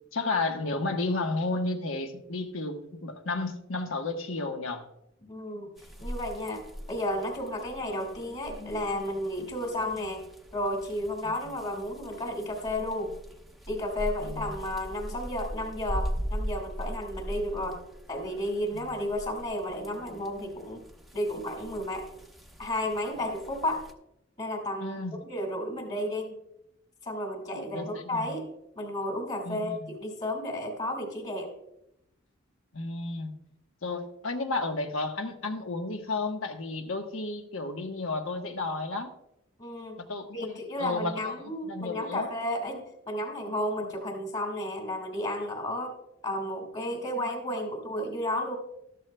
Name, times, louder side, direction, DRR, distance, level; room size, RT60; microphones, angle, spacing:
voice 1, 0.1-4.9 14.2-14.5 18.8-18.9 24.8-25.2 27.5-28.3 29.4-29.9 32.7-33.3 33.8-39.1 40.0-41.3 41.6-42.3, left 3 dB, 80° left, 5 dB, 1.2 m, -32 dB
voice 2, 5.3-6.6 6.9-10.2 10.5-13.1 13.7-17.8 18.1-20.8 21.1-22.0 22.6-23.8 24.4-26.4 27.0-28.5 28.8-31.5 39.6-40.0 40.3-45.9 46.2-48.6, left 1 dB, 35° left, 2 dB, 1.9 m, -32 dB
sound 1, 5.8-23.9, equal, ahead, 0.8 m, -40 dB
13.5 x 12.5 x 2.2 m, 0.81 s
head